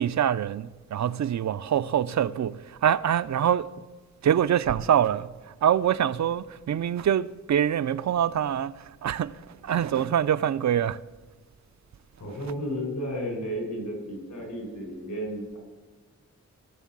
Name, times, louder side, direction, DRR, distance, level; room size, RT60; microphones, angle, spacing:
voice 1, 0.0-3.7 4.2-5.3 5.6-11.0, right 9 dB, 65° right, 0.4 m, -25 dB
voice 2, 12.2-15.6, equal, 70° left, 4.9 m, -33 dB
18.5 x 7.4 x 7.4 m
wide cardioid pair, 140°, 30 cm